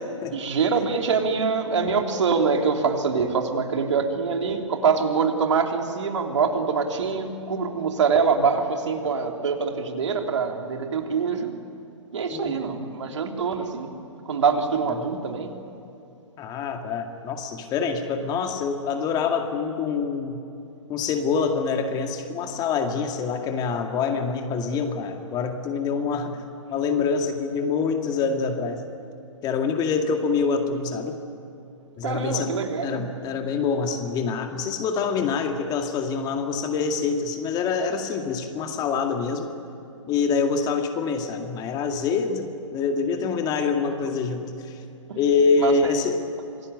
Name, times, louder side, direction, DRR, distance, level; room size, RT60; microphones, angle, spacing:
voice 1, 0.3-11.5 12.1-13.9 14.2-15.5 32.0-33.1 45.1-45.2 45.6-46.0, right 5 dB, 65° right, 3 dB, 3.3 m, -24 dB
voice 2, 12.3-13.2 15.0-15.1 16.4-20.4 20.9-26.4 26.7-28.8 29.4-31.2 32.0-32.6 32.8-39.5 40.1-44.8 45.2-46.3, left 5 dB, 25° left, 5 dB, 2.2 m, -26 dB
27.0 x 19.0 x 9.7 m, 2.8 s
figure-of-eight pair, 125°, 16 cm